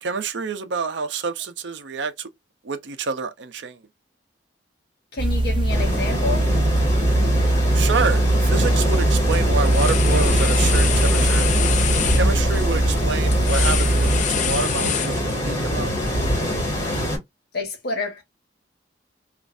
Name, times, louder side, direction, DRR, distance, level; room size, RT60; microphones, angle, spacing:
voice 1, 0.0-2.3 2.6-3.8 7.7-11.5 12.1-15.9, right 4 dB, 75° right, 0.6 m, -28 dB
voice 2, 5.1-6.5 17.5-18.2, left 3 dB, 60° left, 1.2 m, -28 dB
sound 1, 5.2-14.2, right 1 dB, 30° right, 0.5 m, -20 dB
sound 2, 5.7-17.2, equal, 20° left, 2.1 m, -25 dB
sound 3, 8.5-8.8 9.1-15.6, left 9 dB, 40° left, 0.4 m, -27 dB
3.1 x 2.5 x 2.4 m
head